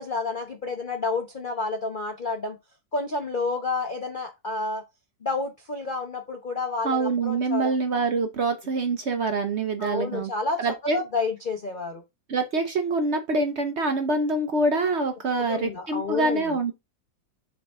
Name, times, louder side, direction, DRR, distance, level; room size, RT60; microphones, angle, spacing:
voice 1, 0.0-2.6 2.9-4.8 5.2-7.7 9.8-10.6 10.9-12.0 15.5-16.6, left 3 dB, 40° left, 0.8 m, -30 dB
voice 2, 6.8-10.3 10.6-11.0 12.3-16.7, right 3 dB, 60° right, 0.7 m, -25 dB
7.1 x 4.0 x 3.6 m
omnidirectional pair, 2.1 m